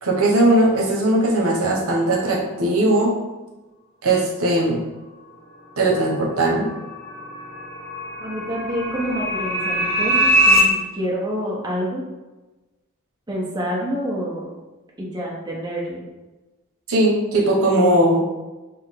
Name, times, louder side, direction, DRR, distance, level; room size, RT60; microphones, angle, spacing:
voice 1, 0.0-3.1 4.0-4.8 5.8-6.7 16.9-18.2, right 1 dB, 75° right, -2 dB, 1.0 m, -18 dB
sound 1, 6.3-10.6, equal, 30° left, 1.0 m, -22 dB
voice 2, 8.2-10.7 10.9-12.0 13.3-14.4 15.0-16.0, equal, 20° right, -4 dB, 0.9 m, -27 dB
6.1 x 2.2 x 3.6 m, 1.1 s
head